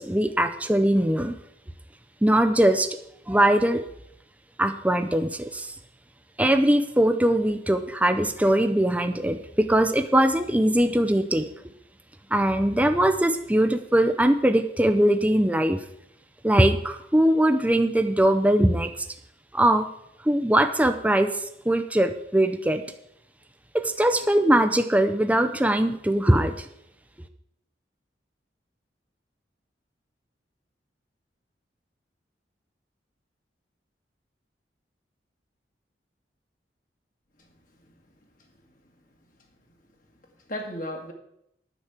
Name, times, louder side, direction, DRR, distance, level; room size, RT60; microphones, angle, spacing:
voice 1, 0.0-1.3 2.2-2.9 3.3-3.8 4.6-5.7 6.4-11.5 12.3-15.8 16.4-18.9 19.5-19.9 20.3-21.3 21.7-22.8 23.8-26.7, right 1 dB, 10° right, 7 dB, 0.6 m, -21 dB
voice 2, 37.4-38.0 38.4-38.5 39.7-39.8 40.4-41.1, equal, 50° left, 2 dB, 1.9 m, -37 dB
9.8 x 6.1 x 8.2 m, 0.76 s
head